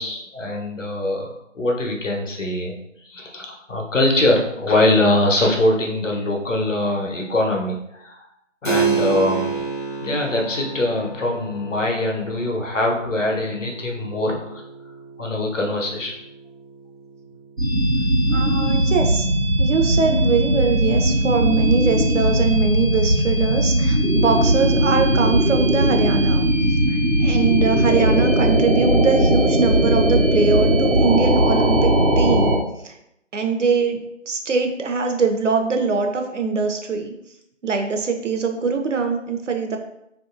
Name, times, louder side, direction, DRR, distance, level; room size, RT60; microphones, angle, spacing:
voice 1, 0.0-2.7 3.0-8.3 8.6-9.6 10.0-14.6 15.2-16.2, left 1 dB, 75° left, 0 dB, 0.8 m, -22 dB
Keyboard (musical), 8.6-18.9, right 5 dB, 40° left, 0.4 m, -30 dB
sound 1, 17.6-32.6, right 1 dB, 85° right, 0.9 m, -18 dB
voice 2, 18.3-19.3 19.6-26.5 26.9-32.6 32.8-33.0 33.3-34.0 34.3-37.1 37.6-39.8, right 4 dB, 70° right, 4 dB, 0.6 m, -22 dB
2.8 x 2.6 x 2.4 m, 0.81 s
figure-of-eight pair, 170°, 38 cm